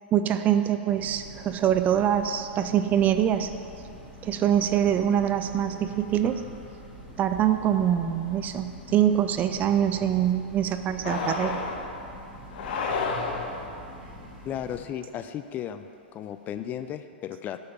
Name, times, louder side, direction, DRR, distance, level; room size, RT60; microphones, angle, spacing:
voice 1, 0.1-3.5 4.2-6.4 7.2-11.6, right 10 dB, 30° right, 9 dB, 0.5 m, -24 dB
Train, 0.9-14.8, equal, 10° right, 2.3 m, -45 dB
sound 1, 11.0-11.9 12.5-13.7, left 4 dB, 55° left, 1.1 m, -30 dB
voice 2, 14.4-15.9 16.1-17.6, left 10 dB, 30° left, 10 dB, 0.3 m, -34 dB
7.6 x 5.6 x 6.9 m, 2.8 s
hypercardioid pair, 110°, 6 cm